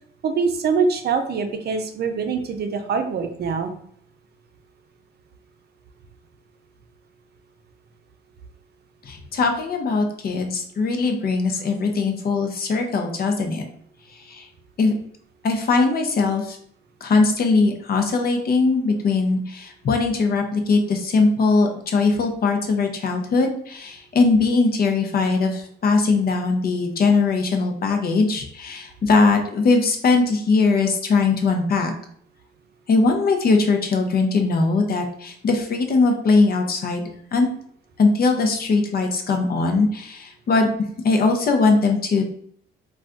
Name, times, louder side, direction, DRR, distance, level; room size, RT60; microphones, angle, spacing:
voice 1, 0.2-3.7, right 5 dB, 55° right, 6 dB, 0.5 m, -24 dB
voice 2, 9.1-13.7 14.3-14.4 14.8-14.9 15.4-16.6 17.0-31.9 32.9-37.5 38.0-40.7 41.0-42.2, left 3 dB, 50° left, 4 dB, 0.7 m, -20 dB
2.3 x 2.2 x 3.7 m, 0.63 s
cardioid pair, 90°, 20 cm